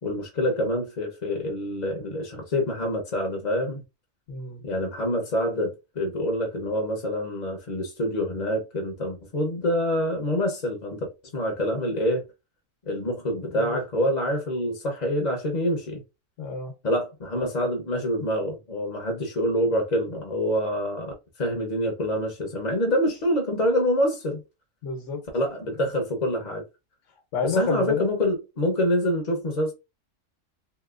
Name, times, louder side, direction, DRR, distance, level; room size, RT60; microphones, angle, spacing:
voice 1, 0.0-3.8 4.6-12.3 12.9-16.0 16.8-21.1 21.4-24.4 25.3-26.6 27.4-29.7, equal, 40° left, 0.7 m, -26 dB
voice 2, 4.3-4.6 13.4-13.8 16.4-16.7 24.8-25.2 27.3-28.0, left 4 dB, 70° left, 1.2 m, -29 dB
2.9 x 2.8 x 2.4 m
omnidirectional pair, 1.3 m